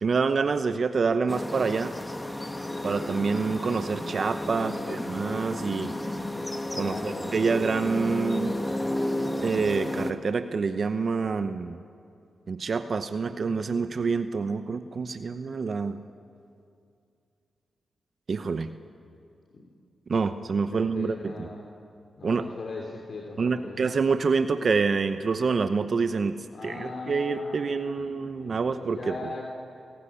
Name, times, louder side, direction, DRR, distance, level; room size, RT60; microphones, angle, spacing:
voice 1, 0.0-1.9 2.8-5.9 6.7-8.6 9.4-11.8 12.5-16.0 18.3-18.7 20.1-21.5 22.2-22.5 23.4-29.2, right 4 dB, 55° right, 10 dB, 0.8 m, -27 dB
sound 1, 1.3-10.1, left 1 dB, 15° left, 1.7 m, -32 dB
voice 2, 4.5-5.1 6.7-7.4 19.5-19.7 20.7-21.7 22.2-23.8 26.5-29.4, left 3 dB, 60° left, 0 dB, 3.0 m, -39 dB
29.5 x 16.0 x 9.9 m, 2.5 s
cardioid pair, 55°, 0 cm